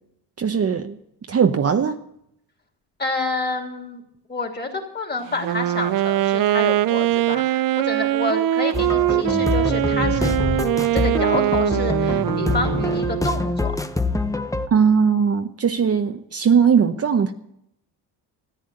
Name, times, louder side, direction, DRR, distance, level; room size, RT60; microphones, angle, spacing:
voice 1, 0.4-0.9 1.3-2.0 14.7-17.3, right 6 dB, 35° right, 6 dB, 0.9 m, -19 dB
voice 2, 3.0-4.0 4.3-10.3 10.9-13.8, left 2 dB, 25° left, 3 dB, 3.1 m, -28 dB
Wind instrument woodwind instrument, 5.3-13.4, right 13 dB, 55° right, 0.5 m, -22 dB
Dilemma - Music Loop, 8.7-14.7, left 3 dB, 10° left, 0.7 m, -25 dB
14.0 x 9.2 x 7.7 m, 0.76 s
cardioid pair, 100°, 41 cm